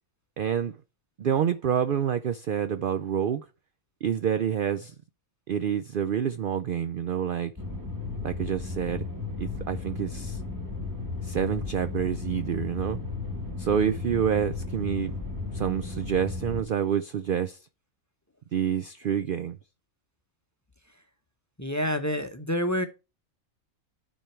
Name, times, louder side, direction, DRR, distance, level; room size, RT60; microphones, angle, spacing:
voice 1, 0.4-0.7 1.2-3.4 4.0-4.9 5.5-7.5 8.2-9.1 9.4-10.4 11.2-13.0 13.6-15.2 15.5-17.6 18.5-19.6, right 8 dB, 75° right, 0.5 m, -27 dB
sound 1, 7.6-16.6, left 3 dB, 15° right, 1.8 m, -34 dB
voice 2, 21.6-22.8, equal, 15° left, 0.7 m, -27 dB
12.0 x 4.5 x 4.4 m
omnidirectional pair, 1.5 m